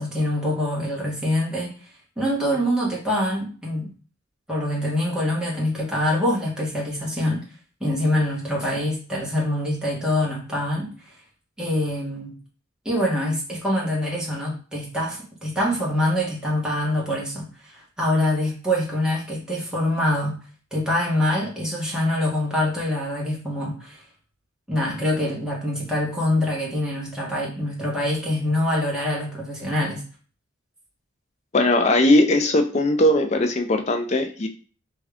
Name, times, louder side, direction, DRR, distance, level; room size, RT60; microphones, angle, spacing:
voice 1, 0.0-1.7 2.2-3.9 4.5-7.4 7.8-10.9 11.6-12.3 12.8-20.4 20.7-24.0 24.7-30.0, left 1 dB, 5° right, -5 dB, 1.1 m, -25 dB
voice 2, 31.5-34.5, left 1 dB, 30° left, 6 dB, 0.4 m, -19 dB
3.5 x 2.3 x 3.4 m, 0.38 s
head